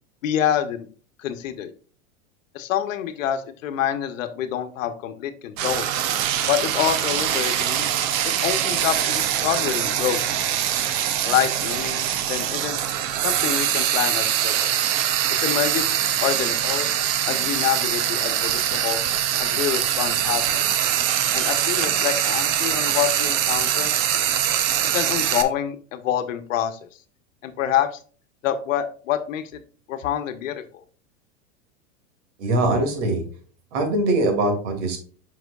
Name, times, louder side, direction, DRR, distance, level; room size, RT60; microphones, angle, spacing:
voice 1, 0.2-0.9 1.2-1.7 2.5-5.9 6.5-7.9 8.2-10.2 11.2-12.8 13.2-14.8 15.4-15.9 16.2-16.9 17.3-19.0 19.4-20.6 21.3-23.9 24.9-26.8 27.4-28.0 28.4-29.4 29.9-30.8, left 10 dB, 75° left, 9 dB, 1.0 m, -26 dB
Frying (food), 5.6-25.4, right 10 dB, 50° right, 0.9 m, -23 dB
voice 2, 32.4-33.2 33.7-35.0, right 2 dB, 65° right, 3 dB, 2.6 m, -22 dB
8.0 x 5.8 x 2.4 m, 0.42 s
supercardioid pair, 125°, 39 cm